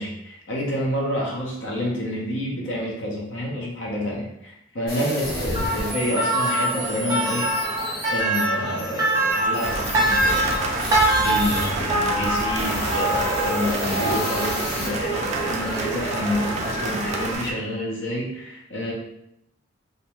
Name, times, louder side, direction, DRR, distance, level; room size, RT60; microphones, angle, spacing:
voice 1, 0.0-18.9, left 1 dB, 70° left, -2 dB, 0.7 m, -29 dB
sound 1, 4.9-11.7 12.1-14.9, equal, 45° left, 1.1 m, -31 dB
sound 2, 5.5-17.3, right 1 dB, 15° right, 0.8 m, -25 dB
sound 3, 9.6-17.5, right 3 dB, 35° right, 0.3 m, -30 dB
2.6 x 2.2 x 3.0 m, 0.79 s
head